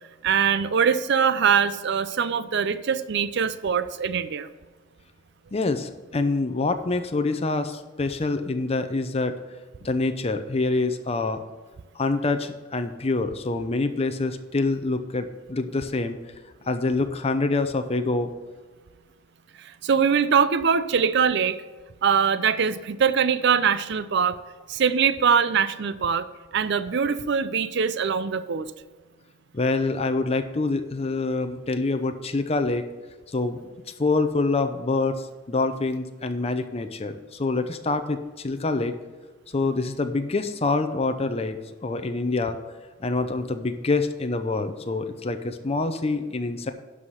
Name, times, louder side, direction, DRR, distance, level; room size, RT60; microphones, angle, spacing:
voice 1, 0.2-4.5 19.6-21.6 22.0-24.4 24.7-26.3 26.5-28.7, right 6 dB, 60° right, 13 dB, 0.5 m, -22 dB
voice 2, 5.5-9.4 9.8-11.4 12.0-16.2 16.7-18.3 29.5-32.9 33.3-33.6 34.0-38.9 39.5-41.6 41.8-42.6 43.0-46.7, left 3 dB, 30° left, 7 dB, 0.7 m, -26 dB
11.5 x 4.9 x 5.7 m, 1.3 s
head